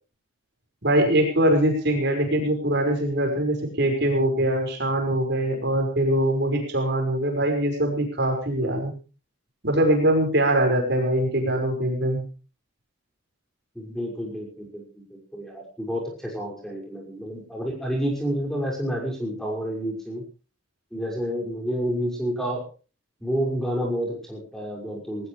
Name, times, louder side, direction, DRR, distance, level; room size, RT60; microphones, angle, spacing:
voice 1, 0.8-8.9 9.6-12.2, right 1 dB, 55° right, 3 dB, 5.5 m, -22 dB
voice 2, 13.7-20.2 20.9-22.6 23.2-25.3, equal, ahead, -1 dB, 5.8 m, -29 dB
19.5 x 19.0 x 3.3 m, 0.35 s
head